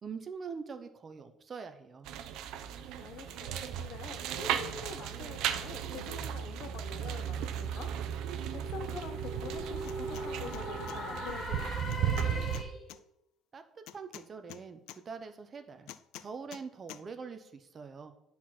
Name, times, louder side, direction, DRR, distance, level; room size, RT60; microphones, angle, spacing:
voice 1, 0.0-2.1 13.5-13.6 13.9-15.9 16.2-18.1, right 5 dB, 30° right, 8 dB, 0.8 m, -44 dB
sound 1, 2.1-12.6, right 9 dB, 70° right, 0.8 m, -36 dB
voice 2, 3.0-7.9 8.5-12.5, left 6 dB, 55° left, 8 dB, 1.0 m, -46 dB
sound 2, 6.8-13.0, equal, 25° left, 1.5 m, -41 dB
sound 3, 9.8-10.3 10.5-11.0 11.9-13.0 13.9-15.0 15.9-16.6 16.9-17.0, left 14 dB, 85° left, 0.4 m, -47 dB
9.7 x 4.3 x 6.1 m, 0.80 s
cardioid pair, 155°, 0 cm